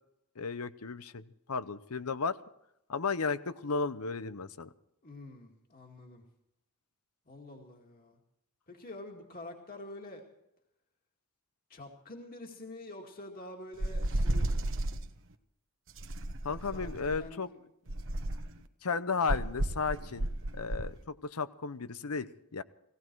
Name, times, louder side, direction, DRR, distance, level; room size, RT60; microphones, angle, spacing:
voice 1, 0.4-2.4 2.9-4.7 16.4-17.5 18.8-20.3 20.5-22.6, left 4 dB, 80° left, 14 dB, 0.8 m, -34 dB
voice 2, 5.0-6.2 7.3-8.2 8.7-10.2 11.7-14.7 16.7-17.6, left 2 dB, 40° left, 1 dB, 2.3 m, -47 dB
sound 1, 13.8-15.0 16.0-17.2 17.9-18.6 19.3-20.9, right 1 dB, 60° right, 1.1 m, -32 dB
18.0 x 17.0 x 4.7 m, 0.80 s
head